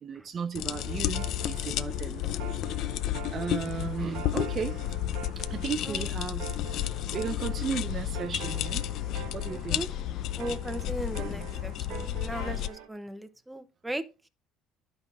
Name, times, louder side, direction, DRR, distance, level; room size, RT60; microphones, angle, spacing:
voice 1, 0.0-2.2 3.3-4.8 5.4-6.5 6.9-8.8 9.3-9.9 11.2-11.5, right 6 dB, 35° right, 0.6 m, -35 dB
sound 1, 0.5-12.7, left 13 dB, 60° left, 0.5 m, -32 dB
sound 2, 0.7-12.9, right 11 dB, 80° right, 1.5 m, -45 dB
voice 2, 9.5-9.9 10.4-14.0, right 1 dB, 5° right, 0.9 m, -37 dB
11.5 x 5.6 x 4.6 m
cardioid pair, 145°, 0 cm